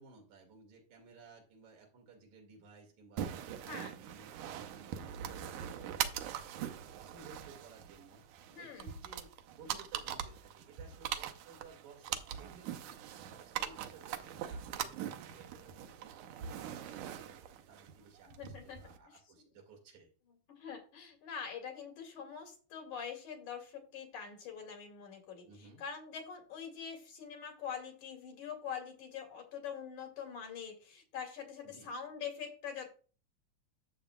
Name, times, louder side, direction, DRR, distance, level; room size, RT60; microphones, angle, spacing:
voice 1, 0.0-6.7 7.0-8.2 8.6-17.4 17.7-20.1 25.5-25.8 31.6-31.9, right 4 dB, 70° right, 0 dB, 3.4 m, -57 dB
sound 1, 3.2-19.0, right 10 dB, 90° right, 2.1 m, -42 dB
voice 2, 8.5-8.9 18.3-18.8 20.5-25.5 25.8-32.9, left 7 dB, 80° left, 3 dB, 3.4 m, -44 dB
12.5 x 7.1 x 2.3 m, 0.38 s
omnidirectional pair, 3.4 m